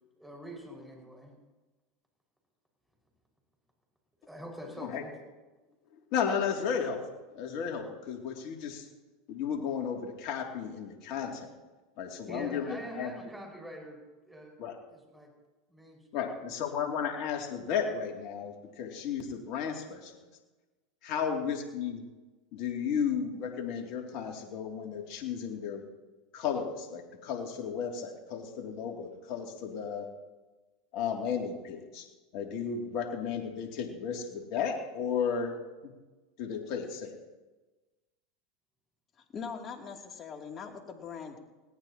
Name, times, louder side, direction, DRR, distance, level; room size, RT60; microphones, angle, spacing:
voice 1, 0.2-1.3 4.3-5.1 12.3-14.5 14.9-15.3 15.7-16.5 21.1-21.3, equal, 5° right, -1 dB, 5.5 m, -45 dB
voice 2, 6.1-7.0 7.3-8.8 9.3-11.5 12.0-13.1 14.6-14.8 16.1-20.1 21.0-22.0 22.5-25.8 26.3-30.1 30.9-32.1 32.3-35.5 35.8-35.9 36.4-37.1, left 7 dB, 55° left, 2 dB, 2.7 m, -34 dB
voice 3, 39.3-41.4, left 6 dB, 35° left, 2 dB, 2.8 m, -41 dB
20.5 x 18.0 x 3.0 m, 1.2 s
hypercardioid pair, 100°, 0 cm